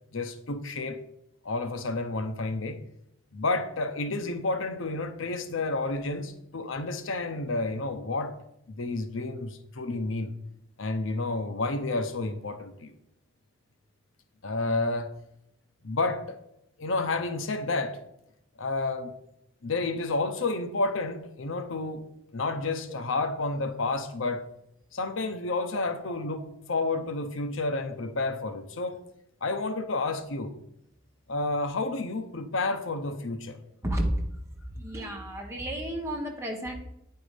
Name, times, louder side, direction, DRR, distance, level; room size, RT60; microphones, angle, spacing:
voice 1, 0.1-1.0 1.4-2.8 3.3-8.3 8.7-10.3 10.8-12.9 14.4-15.1 15.8-16.4 16.8-18.0 18.6-19.1 19.6-22.0 22.3-24.4 24.9-29.0 29.4-30.5 31.3-33.6, left 3 dB, 75° left, 0.8 m, -30 dB
voice 2, 34.8-36.7, right 1 dB, 15° right, 1.3 m, -32 dB
9.2 x 4.6 x 5.0 m
head